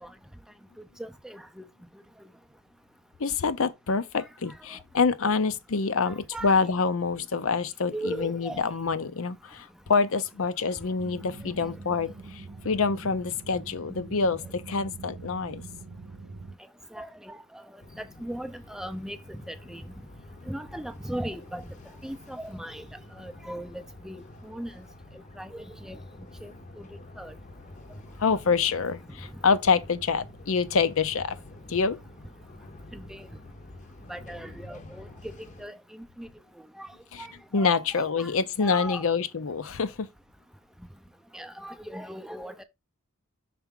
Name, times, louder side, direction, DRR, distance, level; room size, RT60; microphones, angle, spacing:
voice 1, 1.0-1.6 6.0-6.7 7.9-8.6 11.6-11.7 16.9-17.6 18.0-19.8 20.5-21.6 22.0-22.9 23.2-24.8 25.4-26.0 26.4-26.9 27.2-27.3 32.9-33.3 34.1-35.1 35.6-36.3 36.8-36.9 37.2-38.3 38.6-39.1 41.3-42.6, right 1 dB, ahead, 0.5 m, -38 dB
voice 2, 3.2-12.1 12.6-15.6 28.2-31.4 31.7-32.0 37.1-37.3 37.5-40.1, left 5 dB, 65° left, 0.6 m, -26 dB
sound 1, 11.0-16.5, right 3 dB, 60° right, 0.8 m, -44 dB
sound 2, 17.8-35.7, left 1 dB, 35° left, 0.8 m, -48 dB
5.9 x 4.5 x 3.7 m
head